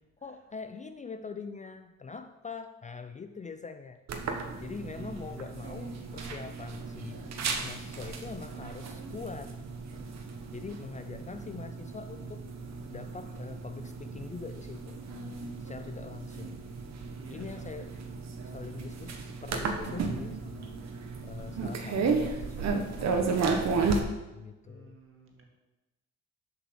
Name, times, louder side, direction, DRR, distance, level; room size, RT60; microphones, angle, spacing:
voice 1, 0.2-4.0 4.6-7.2 7.6-9.6 10.5-12.5 12.9-15.0 15.6-16.6 17.3-18.0 18.5-20.7 21.2-23.6 24.3-25.0, left 5 dB, 25° left, 9 dB, 0.4 m, -43 dB
sound 1, 4.1-24.0, right 4 dB, 60° right, 1.2 m, -34 dB
voice 2, 4.2-5.4 15.6-15.8 17.1-17.9 24.6-25.4, right 3 dB, 45° right, 1 dB, 2.1 m, -53 dB
7.5 x 5.6 x 6.3 m, 1.1 s
cardioid pair, 90°, 30 cm